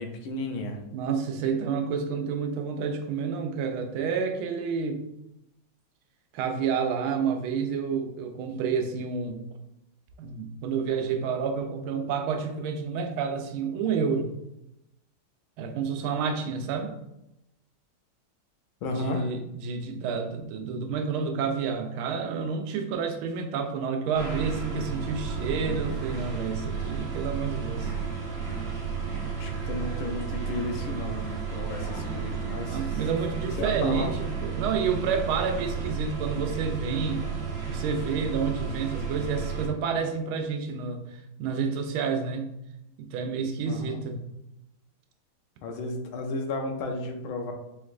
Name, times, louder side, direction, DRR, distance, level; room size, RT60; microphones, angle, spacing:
voice 1, 0.0-0.8 18.8-19.3 29.4-32.9 33.4-34.1 43.6-44.0 45.6-47.5, left 2 dB, 80° left, 4 dB, 1.5 m, -33 dB
voice 2, 0.9-5.0 6.3-9.4 10.2-14.3 15.6-16.9 18.9-27.9 32.7-37.2 37.7-42.5 43.0-44.3, right 6 dB, 85° right, 5 dB, 1.4 m, -29 dB
sound 1, 24.1-39.7, right 6 dB, 40° right, 1.1 m, -32 dB
4.9 x 3.1 x 2.4 m, 0.86 s
omnidirectional pair, 2.3 m